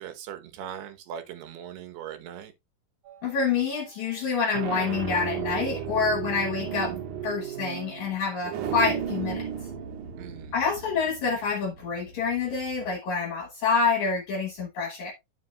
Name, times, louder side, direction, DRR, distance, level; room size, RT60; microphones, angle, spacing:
voice 1, 0.0-2.5 8.4-8.7 10.2-10.5, right 9 dB, 80° right, 3.1 m, -40 dB
sound 1, 3.1-3.5 4.3-12.9, right 8 dB, 60° right, 2.5 m, -35 dB
voice 2, 3.2-7.0 7.2-9.5 10.5-15.1, left 5 dB, 70° left, 1.9 m, -27 dB
9.9 x 7.1 x 2.2 m
omnidirectional pair, 4.6 m